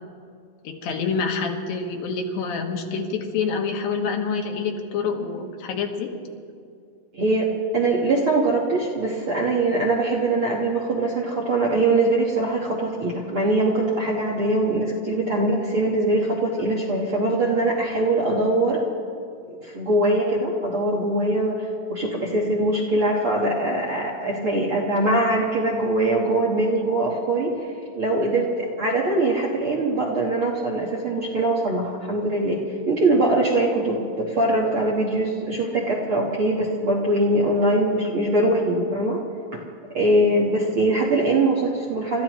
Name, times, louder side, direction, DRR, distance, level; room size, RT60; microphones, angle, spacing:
voice 1, 0.6-6.1, left 5 dB, 75° left, 2 dB, 2.9 m, -27 dB
voice 2, 7.1-18.8 19.6-27.5 27.9-32.6 32.9-39.2 39.9-42.2, right 2 dB, 55° right, -3 dB, 1.6 m, -22 dB
30.0 x 14.0 x 3.1 m, 2.3 s
omnidirectional pair, 4.3 m